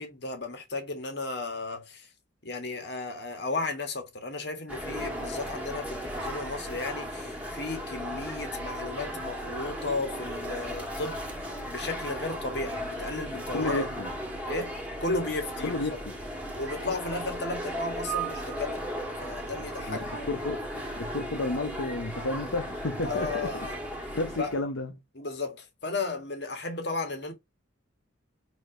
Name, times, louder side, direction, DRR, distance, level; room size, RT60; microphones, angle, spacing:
voice 1, 0.0-2.1 2.4-11.3 11.7-14.0 14.5-15.8 16.6-20.0 23.0-23.8 24.4-24.5 25.2-27.3, left 3 dB, 55° left, 1.7 m, -34 dB
sound 1, 4.7-24.6, equal, 5° right, 1.4 m, -36 dB
voice 2, 13.5-14.1 15.6-16.1 19.9-20.6 20.9-23.6 24.1-24.9, left 2 dB, 85° left, 0.8 m, -32 dB
4.6 x 4.2 x 5.0 m
head